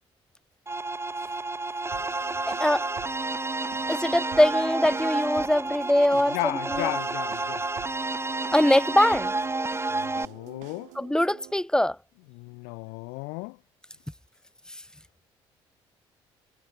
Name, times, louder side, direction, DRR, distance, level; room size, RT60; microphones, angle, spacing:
sound 1, 0.7-10.3, right 3 dB, 20° right, 2.8 m, -30 dB
sound 2, 1.9-11.5, right 20 dB, 80° right, 4.7 m, -48 dB
voice 1, 2.5-2.9 3.9-7.0 8.5-9.4 10.9-12.0, left 1 dB, 5° left, 2.5 m, -22 dB
voice 2, 6.3-7.6 9.9-10.9 12.3-13.6, left 37 dB, 85° left, 0.9 m, -34 dB
hypercardioid pair, 55°, 12 cm